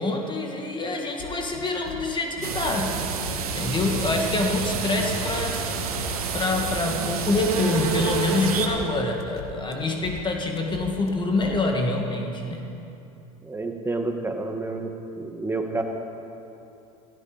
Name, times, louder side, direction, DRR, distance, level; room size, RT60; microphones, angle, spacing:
voice 1, 0.0-3.0 3.5-5.6 6.3-12.7, left 2 dB, 25° left, 2 dB, 2.0 m, -26 dB
sound 1, 1.2-11.7, left 4 dB, 80° left, 1.6 m, -40 dB
sound 2, 2.4-8.7, right 5 dB, 90° right, 1.6 m, -28 dB
voice 2, 13.4-14.9 15.2-15.8, right 3 dB, 10° right, 3 dB, 1.9 m, -29 dB
16.0 x 15.5 x 5.2 m, 2.8 s
hypercardioid pair, 85°, 18 cm